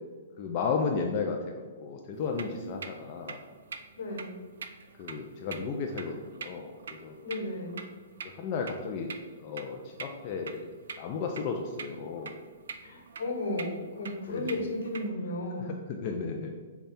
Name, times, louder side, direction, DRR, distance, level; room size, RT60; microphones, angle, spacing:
voice 1, 0.4-1.5 1.8-3.4 5.0-7.2 8.2-9.1 9.4-12.3 14.3-14.5 15.7-16.5, left 5 dB, 35° left, 1 dB, 0.4 m, -34 dB
sound 1, 2.1-15.1, right 5 dB, 75° right, 0.4 m, -45 dB
voice 2, 4.0-4.3 7.2-7.8 12.8-13.7 14.0-15.7, left 1 dB, 75° left, 1 dB, 1.1 m, -34 dB
5.2 x 2.3 x 4.2 m, 1.5 s
hypercardioid pair, 150°, 0 cm